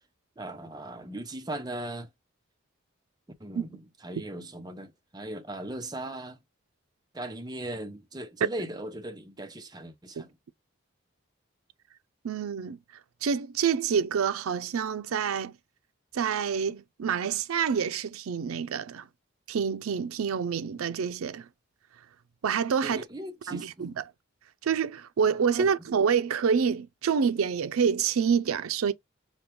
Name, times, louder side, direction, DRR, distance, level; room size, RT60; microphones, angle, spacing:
voice 1, 0.4-2.1 3.4-6.4 7.1-10.3 22.8-23.7 25.6-25.7, right 1 dB, 20° right, 0.6 m, -38 dB
voice 2, 12.2-12.8 13.2-15.5 16.1-19.1 19.5-21.5 22.4-23.0 23.5-24.0 24.6-28.9, right 6 dB, 90° right, 0.4 m, -27 dB
5.1 x 2.2 x 3.0 m
head